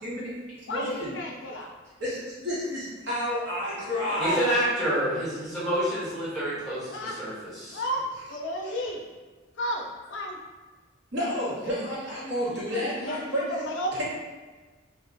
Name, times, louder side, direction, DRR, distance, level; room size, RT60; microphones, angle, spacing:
voice 1, 0.0-1.2 2.0-4.4 8.6-8.8 11.1-13.6 13.9-14.0, equal, 65° right, -9 dB, 1.3 m, -31 dB
voice 2, 0.7-1.7 4.1-4.6 6.9-7.2 7.7-9.0 9.6-10.4 12.4-14.0, equal, 75° left, 1 dB, 0.5 m, -33 dB
voice 3, 4.2-7.8, right 1 dB, ahead, -11 dB, 1.1 m, -28 dB
2.4 x 2.2 x 3.8 m, 1.3 s
head